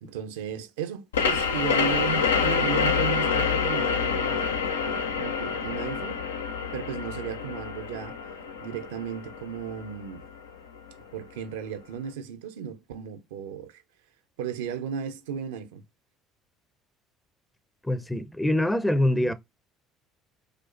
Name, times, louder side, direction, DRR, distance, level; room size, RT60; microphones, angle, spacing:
voice 1, 0.0-4.4 5.2-6.2 6.7-8.2 8.6-10.2 11.1-13.8 14.4-15.8, right 8 dB, 75° right, 0.4 m, -35 dB
sound 1, 1.1-10.5, left 6 dB, 85° left, 0.4 m, -27 dB
voice 2, 17.8-19.3, left 1 dB, 10° left, 0.5 m, -24 dB
4.9 x 2.0 x 2.4 m
hypercardioid pair, 60°, 0 cm